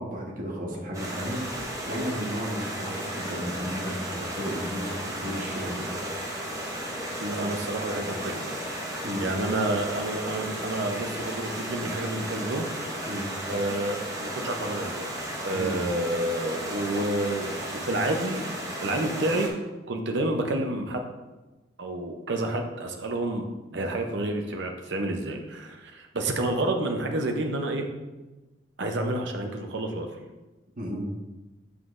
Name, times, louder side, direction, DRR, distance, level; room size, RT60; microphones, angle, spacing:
voice 1, 0.0-6.0 9.0-9.3 13.1-13.3 15.5-15.8 30.8-31.2, equal, 45° right, -2 dB, 1.2 m, -34 dB
Stream, 0.9-19.5, right 1 dB, 15° right, 0.9 m, -34 dB
voice 2, 7.2-8.5 9.2-12.7 13.5-15.1 15.4-18.4 18.8-19.6 19.9-21.0 21.8-23.5 23.7-27.8 28.8-30.1, right 1 dB, 65° right, 3 dB, 0.8 m, -29 dB
7.9 x 5.7 x 2.6 m, 1.1 s
head